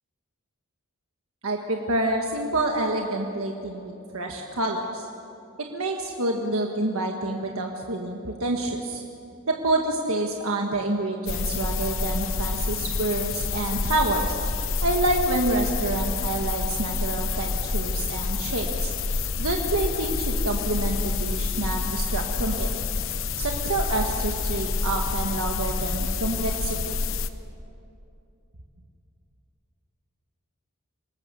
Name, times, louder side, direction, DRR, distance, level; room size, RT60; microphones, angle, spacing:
voice 1, 1.4-5.1 5.7-9.0 9.5-14.4 14.8-18.9 19.4-22.7 23.4-27.0, right 2 dB, 70° right, 1 dB, 1.6 m, -27 dB
sound 1, 11.3-27.3, left 4 dB, 60° left, 0.9 m, -28 dB
26.0 x 19.0 x 7.0 m, 2.7 s
head